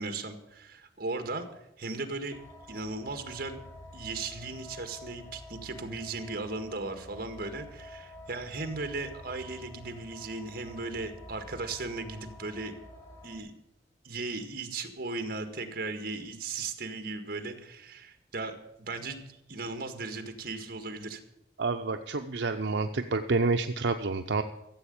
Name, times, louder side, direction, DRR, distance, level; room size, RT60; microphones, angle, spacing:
voice 1, 0.0-1.5 1.8-2.4 2.7-3.6 3.9-12.8 13.2-13.5 14.0-21.2, right 3 dB, 55° right, 7 dB, 1.8 m, -37 dB
sound 1, 2.3-13.4, left 1 dB, 15° left, 3.2 m, -49 dB
voice 2, 21.6-24.4, right 3 dB, 80° right, 6 dB, 0.7 m, -28 dB
14.5 x 7.8 x 8.7 m, 0.83 s
head